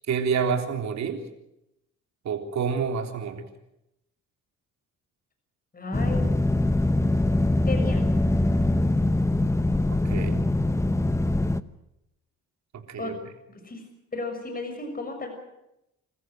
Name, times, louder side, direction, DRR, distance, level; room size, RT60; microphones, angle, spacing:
voice 1, 0.1-1.2 2.2-3.5 9.9-10.5 12.7-13.1, right 6 dB, 65° right, 4 dB, 3.7 m, -28 dB
voice 2, 5.7-6.3 7.7-8.0 13.0-13.1 13.5-13.8 14.1-15.3, left 3 dB, 30° left, 5 dB, 6.5 m, -33 dB
sound 1, 5.9-11.6, left 1 dB, 10° left, 0.9 m, -23 dB
27.5 x 14.5 x 9.1 m, 0.86 s
cardioid pair, 90°, 30 cm